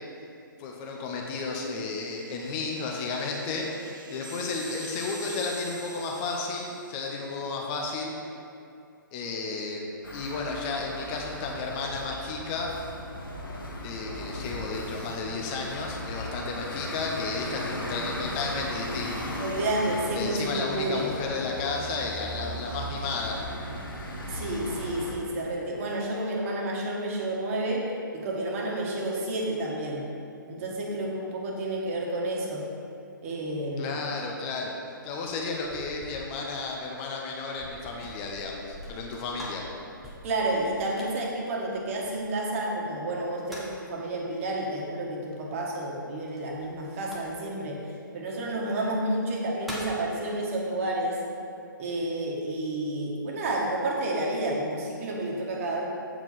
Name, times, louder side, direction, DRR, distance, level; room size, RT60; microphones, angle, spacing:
voice 1, 0.6-8.1 9.1-12.7 13.8-19.3 20.1-23.4 33.8-34.8 35.0-39.7, left 3 dB, 25° left, 0 dB, 0.8 m, -33 dB
sound 1, 1.1-7.0, right 1 dB, 70° right, 0.8 m, -46 dB
sound 2, 10.0-25.2, left 1 dB, 80° left, 1.4 m, -37 dB
voice 2, 19.4-21.1 24.3-30.0 30.5-32.7 33.2-34.0 40.2-47.9 48.1-51.2 51.8-55.8, right 1 dB, 40° right, -2 dB, 1.5 m, -30 dB
sound 3, 35.0-42.5 43.1-43.9 46.3-47.6 48.6-48.7 49.2-50.0, equal, ahead, 1.1 m, -45 dB
7.7 x 4.8 x 5.7 m, 2.6 s
hypercardioid pair, 140°, 11 cm